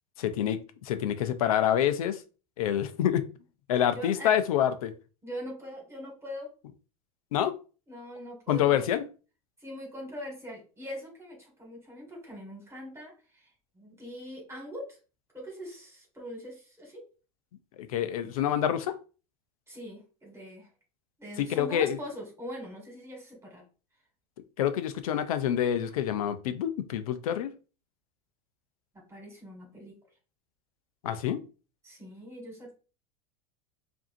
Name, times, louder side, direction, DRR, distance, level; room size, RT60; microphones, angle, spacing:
voice 1, 0.2-2.2 2.6-3.2 3.7-4.9 7.3-7.6 8.5-9.1 17.8-18.9 21.4-22.0 24.6-27.5 31.0-31.4, left 10 dB, 80° left, 0.5 m, -27 dB
voice 2, 3.9-4.3 5.2-6.5 7.9-8.9 9.6-13.5 13.8-15.0 15.3-17.0 19.7-20.7 21.2-23.6 29.1-30.0 31.8-32.7, equal, 15° right, 1.9 m, -42 dB
4.7 x 2.7 x 2.6 m
hypercardioid pair, 100°, 18 cm